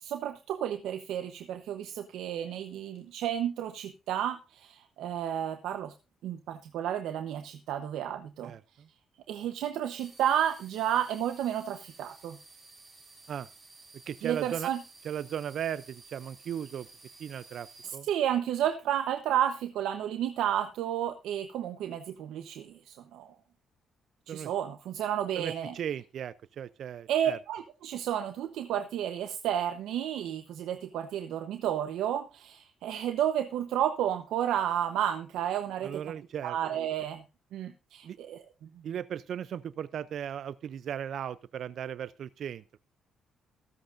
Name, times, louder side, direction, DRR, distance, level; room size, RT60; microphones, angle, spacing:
voice 1, 0.0-5.9 6.2-8.5 9.3-12.4 14.2-14.8 17.8-23.3 24.3-25.7 27.1-36.0 36.4-37.2 37.5-38.4, right 10 dB, 85° right, 7 dB, 0.9 m, -31 dB
voice 2, 8.4-8.9 13.3-13.5 14.1-14.7 15.0-16.9 17.2-18.1 24.3-24.5 25.4-27.4 35.8-36.6 38.0-38.2 38.8-42.8, right 9 dB, 65° right, 17 dB, 0.5 m, -37 dB
sound 1, 10.0-17.9, right 3 dB, 30° right, 4.1 m, -54 dB
23.0 x 7.9 x 2.6 m, 0.30 s
cardioid pair, 90°, 0 cm